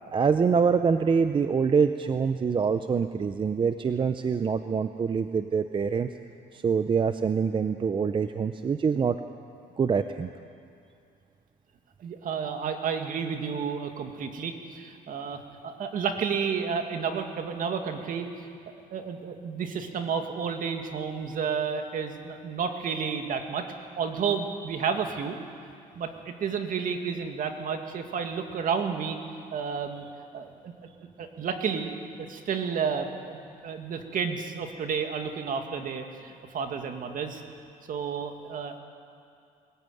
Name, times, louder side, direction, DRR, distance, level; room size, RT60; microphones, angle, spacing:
voice 1, 0.1-6.1 6.5-9.2 9.8-10.3, right 6 dB, 30° right, 9 dB, 0.7 m, -25 dB
voice 2, 12.0-18.3 18.9-23.6 24.0-25.4 25.9-29.2 29.5-30.0 30.3-30.7 31.2-31.9 32.2-33.4 33.6-37.4 37.9-38.8, right 6 dB, 55° right, 5 dB, 2.2 m, -31 dB
22.0 x 15.0 x 9.3 m, 2.5 s
cardioid pair, 110°, 17 cm